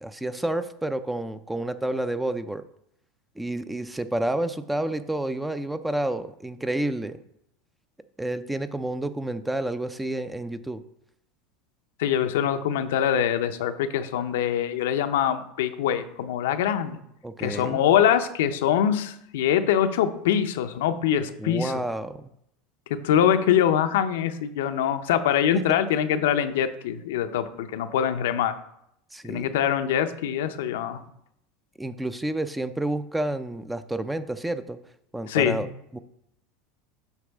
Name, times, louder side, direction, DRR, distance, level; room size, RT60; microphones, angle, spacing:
voice 1, 0.0-2.6 3.4-7.2 8.2-10.8 17.2-17.9 21.4-22.2 25.5-25.6 29.1-29.5 31.8-34.8 35.1-35.7 35.9-36.0, right 1 dB, 5° right, 12 dB, 0.4 m, -29 dB
voice 2, 12.0-17.0 17.4-21.8 22.9-28.5 29.3-31.0 35.3-35.6, left 9 dB, 80° left, 9 dB, 0.5 m, -24 dB
8.1 x 4.8 x 3.5 m, 0.76 s
supercardioid pair, 110°, 0 cm